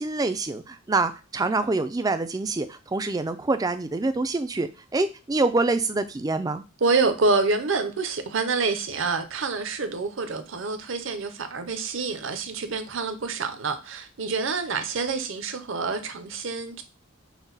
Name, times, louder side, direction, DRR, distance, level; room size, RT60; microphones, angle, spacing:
voice 1, 0.0-6.6, right 3 dB, 20° right, 0.3 m, -26 dB
voice 2, 6.8-16.8, right 4 dB, 65° right, 0.7 m, -27 dB
6.1 x 2.2 x 4.0 m
head